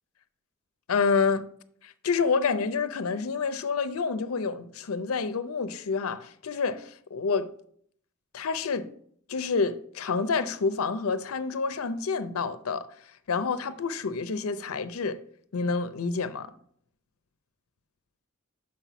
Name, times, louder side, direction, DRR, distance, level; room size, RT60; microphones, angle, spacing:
voice 1, 0.9-1.5 1.8-7.5 8.3-8.9 9.3-12.9 13.3-15.2 15.5-16.5, left 5 dB, 85° left, 0.6 m, -28 dB
6.3 x 5.7 x 6.0 m
head